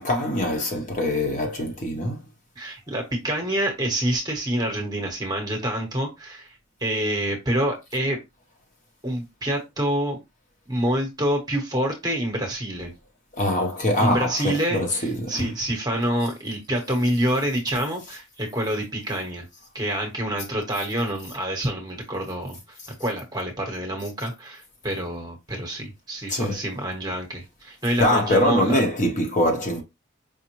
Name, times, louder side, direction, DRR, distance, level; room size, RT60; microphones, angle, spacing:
voice 1, 0.0-2.2 13.4-15.5 26.3-26.6 28.0-29.8, left 1 dB, 35° left, 0.8 m, -23 dB
voice 2, 2.6-6.5 6.8-8.2 9.0-10.2 10.7-12.9 14.0-19.5 19.7-28.8, right 1 dB, 20° right, 0.9 m, -27 dB
4.9 x 2.1 x 3.0 m
head